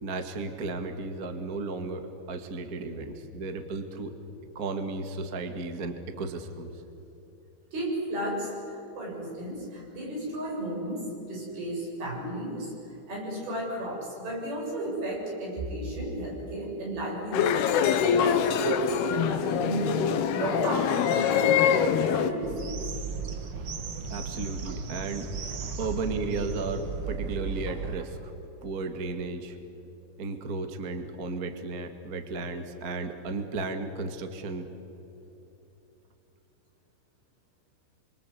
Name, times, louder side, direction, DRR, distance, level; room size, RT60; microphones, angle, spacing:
voice 1, 0.0-4.1 4.5-6.7 24.1-25.3 25.8-28.3 28.6-29.6 30.2-34.7, right 3 dB, 35° right, 6 dB, 1.4 m, -34 dB
voice 2, 7.7-12.7 13.1-21.6 22.0-22.7, right 1 dB, 70° right, -3 dB, 9.7 m, -33 dB
sound 1, 17.3-22.3, left 8 dB, 85° left, 3.2 m, -24 dB
sound 2, 22.4-28.0, right 5 dB, 55° right, 1.6 m, -36 dB
27.5 x 26.0 x 8.3 m, 3.0 s
omnidirectional pair, 4.5 m